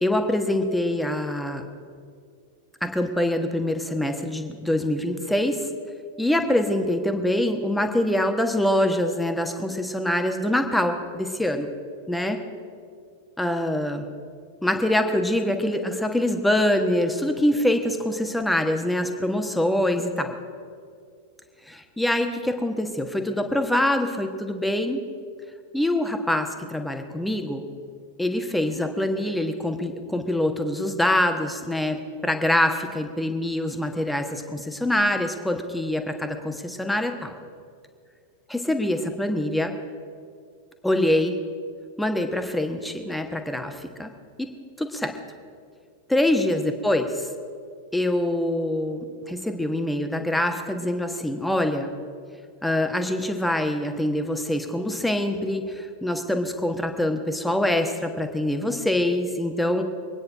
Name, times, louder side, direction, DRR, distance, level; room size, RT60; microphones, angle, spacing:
voice 1, 0.0-1.6 2.8-5.6 6.2-11.7 12.1-12.4 13.4-14.1 14.6-20.3 21.7-25.0 25.7-27.6 28.2-37.4 38.5-39.7 40.8-41.4 42.0-44.1 44.4-44.5 44.8-45.1 46.1-47.3 47.9-51.9 52.6-59.8, left 1 dB, 5° left, 5 dB, 1.3 m, -24 dB
24.0 x 9.4 x 4.8 m, 2.2 s
figure-of-eight pair, 90°, 0 cm